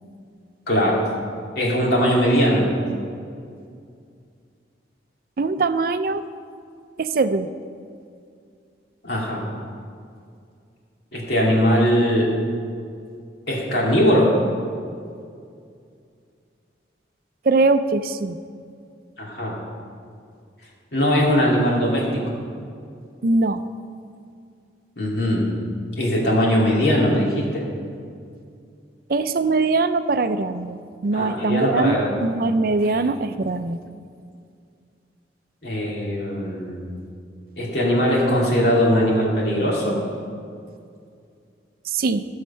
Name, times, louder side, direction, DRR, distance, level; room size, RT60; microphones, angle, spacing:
voice 1, 0.7-1.0 1.5-2.6 9.0-9.4 11.1-12.3 13.5-14.3 19.2-19.6 20.9-22.2 25.0-25.5 26.0-27.7 31.1-32.2 32.9-33.1 35.6-36.9 37.6-40.0, equal, 60° left, -4 dB, 2.7 m, -20 dB
voice 2, 5.4-6.2 7.0-7.5 17.5-18.4 23.2-23.6 29.1-33.8 41.9-42.2, right 3 dB, 50° right, 11 dB, 0.5 m, -22 dB
15.5 x 6.5 x 5.6 m, 2.4 s
head